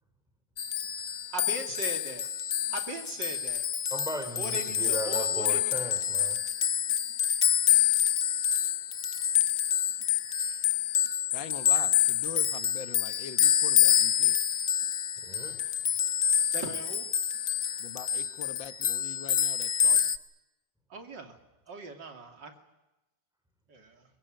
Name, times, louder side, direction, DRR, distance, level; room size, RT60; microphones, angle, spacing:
sound 1, 0.6-20.2, left 9 dB, 50° left, 1.3 m, -27 dB
voice 1, 1.3-2.3 2.7-3.6 4.4-5.7 16.5-17.1 20.9-21.4 21.7-22.5 23.7-24.0, right 2 dB, 70° right, 5 dB, 3.4 m, -39 dB
voice 2, 3.9-6.4 10.4-10.6 15.2-15.7, equal, ahead, 6 dB, 4.4 m, -37 dB
voice 3, 11.3-14.4 17.8-20.1, left 8 dB, 85° left, 11 dB, 1.9 m, -43 dB
23.0 x 21.5 x 9.1 m, 1.0 s
omnidirectional pair, 2.0 m